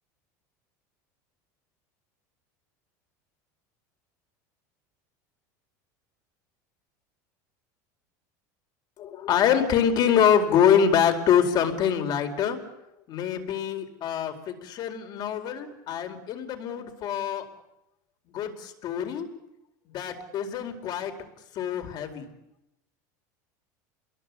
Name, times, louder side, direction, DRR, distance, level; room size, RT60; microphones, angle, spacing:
voice 1, 9.0-12.6 13.1-17.4 18.3-19.3 19.9-21.1 21.5-22.3, left 8 dB, 50° left, 6 dB, 4.6 m, -25 dB
29.0 x 22.0 x 8.4 m, 0.85 s
supercardioid pair, 115°, 9 cm